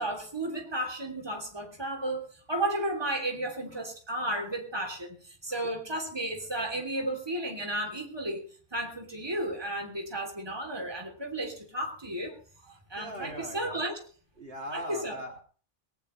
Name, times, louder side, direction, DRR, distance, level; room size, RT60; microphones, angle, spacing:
voice 1, 0.0-12.4 12.9-14.0 14.7-15.2, right 1 dB, 20° right, 1 dB, 3.2 m, -33 dB
voice 2, 12.6-13.8 14.4-15.4, equal, 55° right, 2 dB, 3.0 m, -41 dB
19.0 x 17.5 x 3.2 m, 0.41 s
omnidirectional pair, 1.2 m